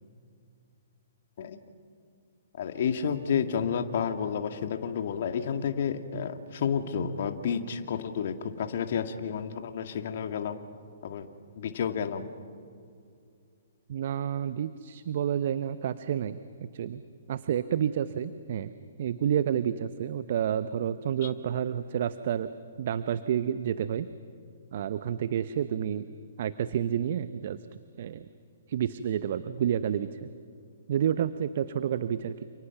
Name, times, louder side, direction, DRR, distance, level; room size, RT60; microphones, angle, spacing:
voice 1, 2.6-10.6 11.0-11.3 11.6-12.3 21.2-21.3, left 7 dB, 55° left, 7 dB, 2.1 m, -30 dB
voice 2, 13.9-16.4 16.7-17.0 17.3-18.7 19.0-22.5 22.8-24.1 24.7-26.1 26.4-27.6 28.0-28.2 28.7-30.3 30.9-32.4, right 9 dB, 55° right, 13 dB, 0.9 m, -29 dB
29.5 x 28.5 x 6.0 m, 2.4 s
figure-of-eight pair, 125°, 0 cm